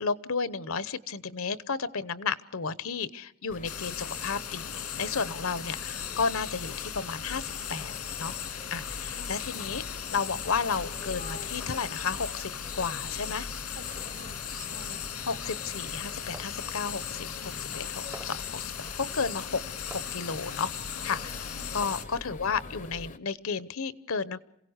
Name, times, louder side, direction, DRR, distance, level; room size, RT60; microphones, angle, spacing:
voice 1, 0.0-7.9 8.2-8.4 8.7-9.8 10.1-13.5 15.2-18.7 19.0-20.7 21.0-24.4, left 5 dB, 65° left, 16 dB, 0.9 m, -33 dB
sound 1, 3.5-23.2, left 2 dB, 35° left, 0.7 m, -44 dB
sound 2, 3.6-22.0, left 9 dB, 85° left, 2.4 m, -38 dB
voice 2, 9.1-9.4 13.7-15.3 21.5-21.8, right 3 dB, 70° right, 9 dB, 1.9 m, -51 dB
sound 3, 16.3-16.6 18.1-18.5 19.9-20.3 21.8-22.2, right 1 dB, 10° right, 0.7 m, -47 dB
27.5 x 17.0 x 6.4 m, 0.80 s
head